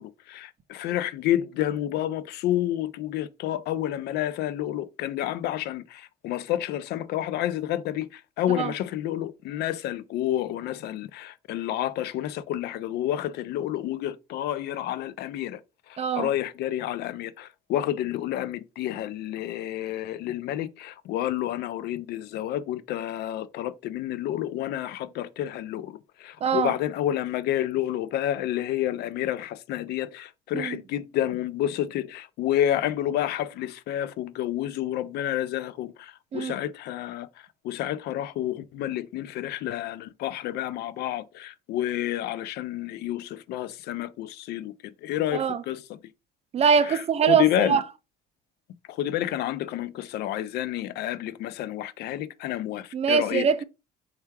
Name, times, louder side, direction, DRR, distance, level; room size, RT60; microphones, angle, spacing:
voice 1, 0.0-15.6 15.9-37.3 37.6-45.8 46.8-47.8 48.9-53.5, left 12 dB, 75° left, 0.4 m, -29 dB
voice 2, 16.0-16.3 26.4-26.7 30.5-30.8 36.3-36.6 45.3-45.6 46.5-47.8 52.9-53.6, right 7 dB, 40° right, 0.5 m, -23 dB
4.4 x 2.3 x 4.5 m
cardioid pair, 110°, 17 cm